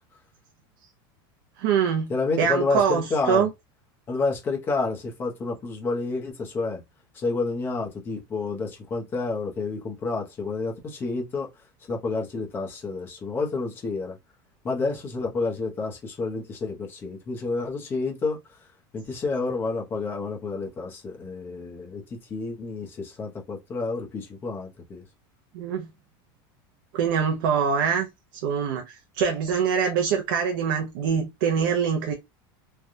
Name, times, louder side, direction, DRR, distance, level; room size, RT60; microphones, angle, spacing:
voice 1, 1.6-2.1 2.4-3.5 25.5-25.9 26.9-28.1 28.3-32.1, right 7 dB, 60° right, 0.6 m, -24 dB
voice 2, 2.1-3.5 4.1-6.8 7.1-11.5 11.9-14.2 14.6-18.4 18.9-25.0, left 3 dB, 20° left, 0.8 m, -29 dB
3.2 x 2.3 x 2.6 m
supercardioid pair, 170°, 12 cm